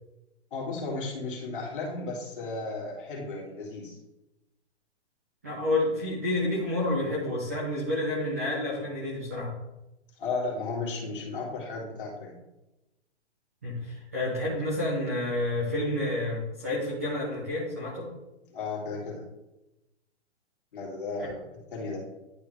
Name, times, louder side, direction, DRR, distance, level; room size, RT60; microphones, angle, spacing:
voice 1, 0.5-4.0 10.2-12.4 18.5-19.3 20.7-21.4 21.7-22.0, left 3 dB, 45° left, -3 dB, 2.2 m, -34 dB
voice 2, 5.4-9.5 13.6-18.1, left 1 dB, 15° right, -6 dB, 0.6 m, -29 dB
10.5 x 3.5 x 3.2 m, 0.96 s
hypercardioid pair, 180°, 35 cm